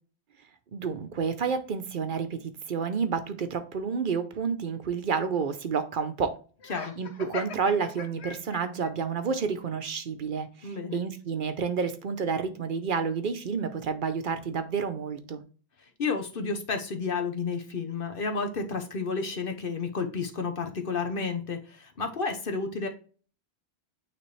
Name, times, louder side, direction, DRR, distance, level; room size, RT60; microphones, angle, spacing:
voice 1, 0.7-6.4 7.0-15.4, right 5 dB, 55° right, 0.8 m, -30 dB
Laughter, 6.6-8.9, left 5 dB, 85° left, 1.1 m, -40 dB
voice 2, 10.6-11.0 16.0-22.9, left 4 dB, 60° left, 1.1 m, -31 dB
9.1 x 3.3 x 3.2 m
omnidirectional pair, 1.1 m